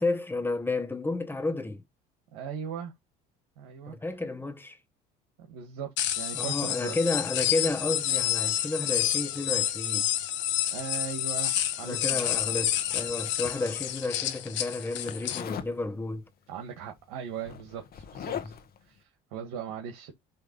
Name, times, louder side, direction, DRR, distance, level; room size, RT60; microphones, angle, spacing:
voice 1, 0.0-1.8 3.9-4.8 6.3-10.1 11.8-16.3 18.2-18.5, left 2 dB, 10° left, 1.3 m, -31 dB
voice 2, 2.3-2.9 3.6-3.9 5.5-6.9 10.7-12.2 16.5-18.6 18.9-20.1, right 7 dB, 85° right, 1.7 m, -39 dB
sound 1, 6.0-15.4, left 12 dB, 65° left, 1.2 m, -29 dB
Zipper (clothing), 12.3-13.9 15.3-15.7 16.9-17.0 17.3-18.8, left 8 dB, 50° left, 1.4 m, -40 dB
5.6 x 3.3 x 5.3 m
supercardioid pair, 85°, 20 cm